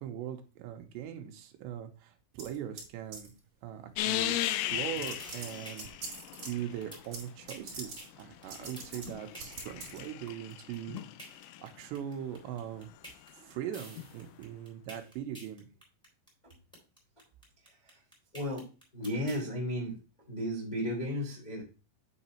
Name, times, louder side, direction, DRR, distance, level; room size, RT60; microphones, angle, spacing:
voice 1, 0.0-3.3 3.6-11.0 11.3-12.9 13.3-15.7, right 10 dB, 80° right, 4 dB, 2.6 m, -41 dB
sound 1, 2.4-2.9 3.1-3.4 4.4-4.5 4.9-6.5 7.1-7.2 7.5-8.0 8.5-9.1 9.4-10.0, right 4 dB, 35° right, 3.4 m, -43 dB
sound 2, 4.0-7.1 8.1-11.6 14.0-14.1, left 14 dB, 90° left, 3.3 m, -36 dB
sound 3, 5.1-19.4, equal, ahead, 2.2 m, -50 dB
voice 2, 18.9-19.9 20.3-21.6, equal, 50° left, -2 dB, 0.5 m, -34 dB
9.5 x 4.0 x 4.3 m, 0.34 s
omnidirectional pair, 5.8 m